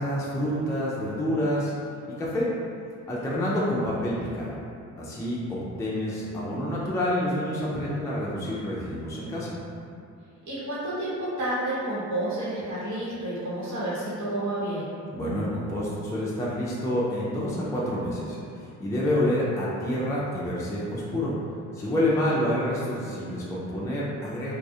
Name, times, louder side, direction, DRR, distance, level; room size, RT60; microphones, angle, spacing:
voice 1, 0.0-1.7 2.2-2.5 3.1-4.6 5.0-9.6 15.1-21.3 21.7-24.5, left 1 dB, 10° left, -7 dB, 0.3 m, -28 dB
voice 2, 10.5-14.9 22.0-22.3, right 1 dB, 65° right, -9 dB, 0.9 m, -30 dB
2.3 x 2.0 x 2.7 m, 2.4 s
cardioid pair, 90°, 30 cm